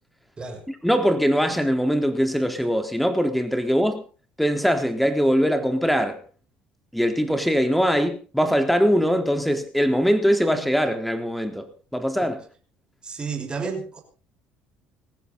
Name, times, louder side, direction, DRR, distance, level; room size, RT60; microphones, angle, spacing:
voice 1, 0.7-4.1 4.4-6.2 6.9-12.4, equal, ahead, 8 dB, 3.8 m, -22 dB
voice 2, 13.0-14.0, right 5 dB, 25° right, 4 dB, 5.9 m, -31 dB
19.5 x 15.5 x 4.0 m, 0.36 s
supercardioid pair, 80°, 3 cm